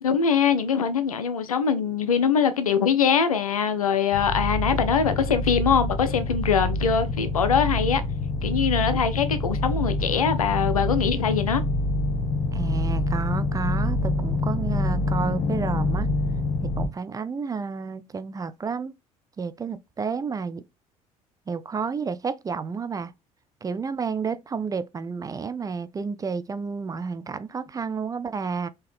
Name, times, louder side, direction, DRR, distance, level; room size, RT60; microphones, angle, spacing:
voice 1, 0.0-8.0 8.4-11.6, left 6 dB, 80° left, 0.4 m, -23 dB
sound 1, 4.1-16.9, left 2 dB, 50° left, 1.0 m, -26 dB
voice 2, 12.5-16.1 16.6-18.9 19.4-20.6 21.5-23.1 23.6-28.7, right 5 dB, 20° right, 0.3 m, -31 dB
3.6 x 2.7 x 3.3 m
figure-of-eight pair, 50°, 18 cm